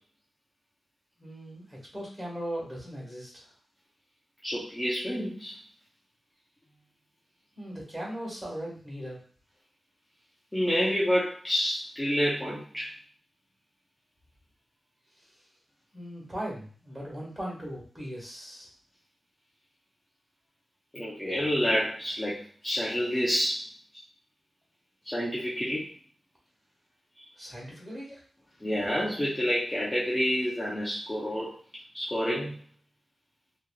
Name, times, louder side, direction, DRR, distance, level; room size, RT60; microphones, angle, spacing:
voice 1, 1.2-3.3 7.6-9.2 15.9-18.7 27.4-28.2, equal, 20° right, -4 dB, 1.5 m, -38 dB
voice 2, 4.4-5.5 10.5-12.9 20.9-23.6 25.1-25.9 28.6-31.5 31.9-32.6, equal, 15° left, -8 dB, 0.7 m, -28 dB
2.9 x 2.5 x 2.3 m, 0.43 s
wide cardioid pair, 95°, 0 cm